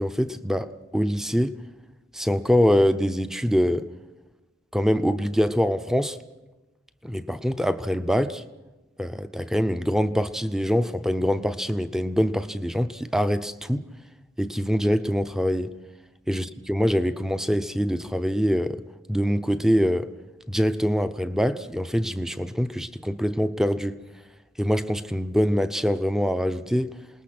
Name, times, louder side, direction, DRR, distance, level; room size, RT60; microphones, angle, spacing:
voice 1, 0.0-1.6 2.1-3.8 4.7-6.2 7.0-8.4 9.0-13.9 14.4-15.7 16.3-18.8 19.1-20.1 20.5-24.0 24.6-27.0, equal, 5° right, 0.6 m, -24 dB
28.0 x 19.5 x 6.0 m
head